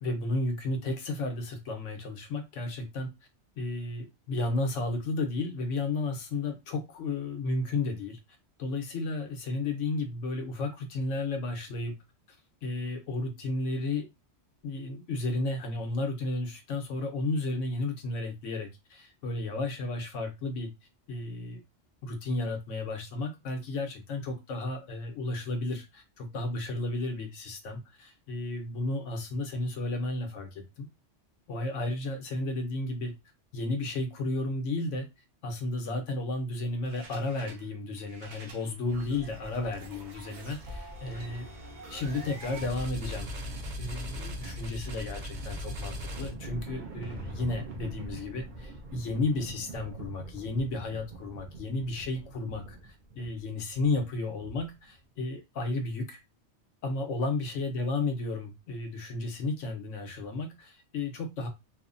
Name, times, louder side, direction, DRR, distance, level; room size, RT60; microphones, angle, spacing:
voice 1, 0.0-3.1 3.6-8.2 8.6-11.9 12.3-14.1 14.6-20.7 21.1-21.6 22.0-30.9 31.5-33.1 33.5-35.1 35.4-41.5 41.9-43.3 43.8-56.2 56.8-61.5, left 2 dB, 85° left, 5 dB, 1.1 m, -33 dB
sound 1, 36.9-37.6 38.0-54.9, right 1 dB, 55° right, 0.5 m, -41 dB
3.0 x 2.0 x 2.5 m, 0.23 s
omnidirectional pair, 1.2 m